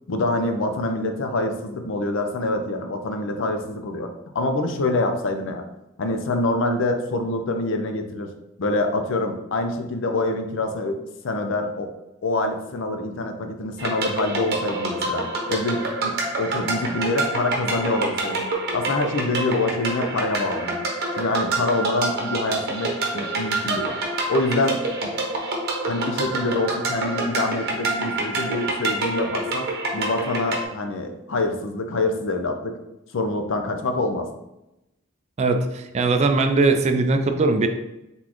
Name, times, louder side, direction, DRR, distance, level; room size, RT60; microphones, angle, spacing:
voice 1, 0.1-4.1 4.3-5.6 6.0-8.3 8.6-11.0 11.2-11.9 12.2-20.9 21.2-24.0 24.3-25.2 25.9-32.8 33.1-34.3, left 2 dB, 65° left, 6 dB, 0.5 m, -25 dB
sound 1, 13.8-30.6, right 2 dB, 50° right, 0.8 m, -27 dB
voice 2, 35.4-37.7, right 3 dB, 35° right, 6 dB, 0.3 m, -20 dB
4.0 x 3.6 x 3.0 m, 0.91 s
head